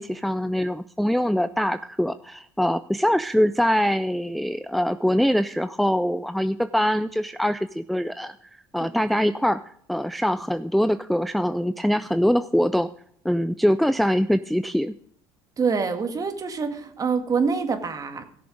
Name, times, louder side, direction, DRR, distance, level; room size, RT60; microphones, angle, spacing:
voice 1, 0.0-8.3 8.7-9.6 9.9-12.9 13.2-14.9, equal, ahead, 12 dB, 0.4 m, -23 dB
voice 2, 15.6-18.2, right 5 dB, 35° right, 7 dB, 1.9 m, -25 dB
16.5 x 6.8 x 5.1 m, 0.63 s
supercardioid pair, 80°, 10 cm